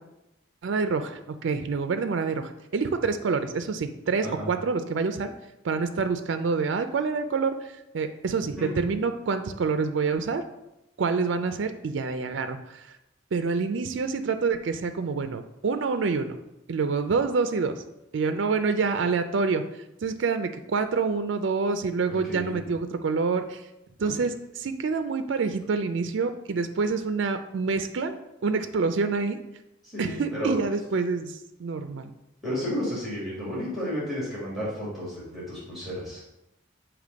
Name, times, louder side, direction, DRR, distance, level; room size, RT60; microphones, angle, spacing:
voice 1, 0.6-5.3 5.6-7.6 7.9-10.4 11.0-12.9 13.3-16.4 16.7-17.8 18.1-19.6 20.0-23.6 24.0-28.2 28.4-29.4 30.0-32.1, right 4 dB, 65° right, 8 dB, 0.4 m, -27 dB
voice 2, 22.2-22.7 24.0-24.1 29.8-30.5 32.4-36.2, equal, ahead, -8 dB, 1.9 m, -32 dB
6.7 x 2.9 x 5.1 m, 0.91 s
head